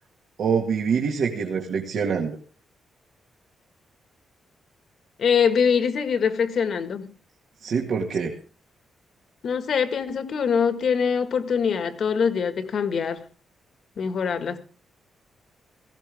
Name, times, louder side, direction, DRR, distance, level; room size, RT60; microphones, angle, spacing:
voice 1, 0.4-2.4 7.6-8.3, right 6 dB, 65° right, 2.0 m, -25 dB
voice 2, 5.2-7.1 9.4-13.2 14.0-14.6, left 6 dB, 60° left, 1.7 m, -23 dB
17.5 x 15.5 x 3.6 m
cardioid pair, 135°, 0 cm